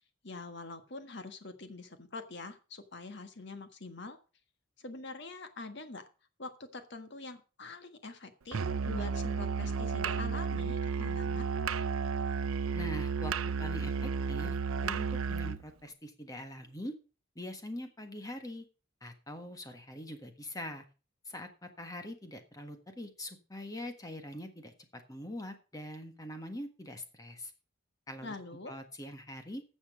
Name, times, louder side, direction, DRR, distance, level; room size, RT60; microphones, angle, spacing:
voice 1, 0.2-4.2 4.8-6.1 6.4-11.5 28.2-28.7, left 3 dB, 55° left, 8 dB, 1.5 m, -44 dB
Musical instrument, 8.5-15.6, right 5 dB, 90° right, 0.6 m, -33 dB
voice 2, 12.7-14.6 14.8-16.9 17.3-18.6 19.0-20.8 21.2-27.5 28.1-28.3 28.7-29.6, left 1 dB, 15° left, 6 dB, 1.5 m, -43 dB
12.5 x 7.2 x 5.2 m, 0.35 s
head